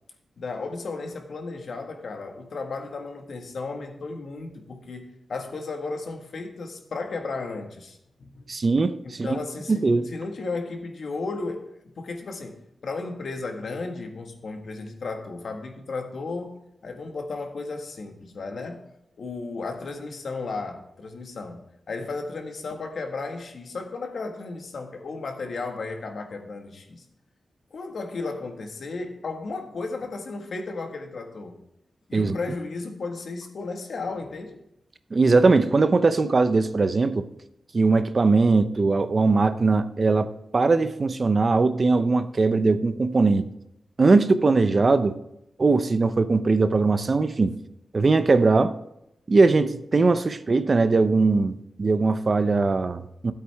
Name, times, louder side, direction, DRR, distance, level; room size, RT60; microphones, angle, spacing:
voice 1, 0.4-8.4 9.0-18.9 19.2-27.0 27.7-31.6 32.1-34.6, left 3 dB, 70° left, 4 dB, 1.6 m, -34 dB
voice 2, 8.5-9.4 9.7-10.1 32.1-32.4 35.1-37.3 37.7-43.5 44.0-45.2 45.6-47.5 47.9-48.7 49.3-53.3, right 3 dB, 40° right, 11 dB, 0.6 m, -20 dB
12.5 x 8.2 x 3.5 m, 0.82 s
wide cardioid pair, 110°, 0 cm